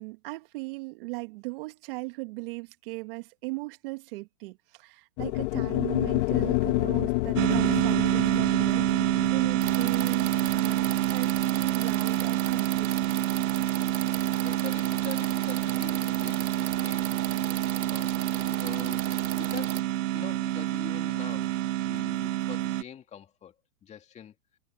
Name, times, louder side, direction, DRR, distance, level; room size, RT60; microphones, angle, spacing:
voice 1, 0.0-13.2, right 25 dB, 40° right, 2.1 m, -38 dB
sound 1, 5.2-13.4, left 22 dB, 40° left, 2.5 m, -30 dB
sound 2, 7.4-22.8, right 15 dB, 65° right, 0.6 m, -27 dB
sound 3, 9.6-19.8, right 9 dB, 90° right, 2.5 m, -36 dB
voice 2, 14.4-17.1 17.9-23.5 23.8-24.3, left 9 dB, 15° left, 2.4 m, -44 dB
hypercardioid pair, 145°, 41 cm